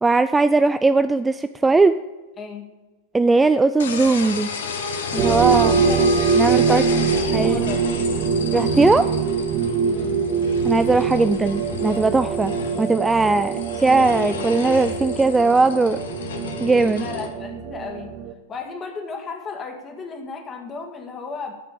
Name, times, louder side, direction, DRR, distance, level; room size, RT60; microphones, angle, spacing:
voice 1, 0.0-1.9 3.1-4.5 5.1-5.7 6.4-6.8 7.3-7.6 8.5-9.1 10.6-16.0 16.6-17.0, right 3 dB, 10° right, 11 dB, 0.3 m, -19 dB
sound 1, 3.8-17.3, left 5 dB, 65° left, 1.4 m, -32 dB
sound 2, 5.2-18.3, right 5 dB, 35° right, 0.8 m, -23 dB
voice 2, 5.5-6.0 6.3-7.9 9.9-10.3 16.9-18.1 18.5-21.5, left 4 dB, 25° left, 3 dB, 2.0 m, -34 dB
12.5 x 5.9 x 7.2 m, 1.2 s
figure-of-eight pair, 90°, 0 cm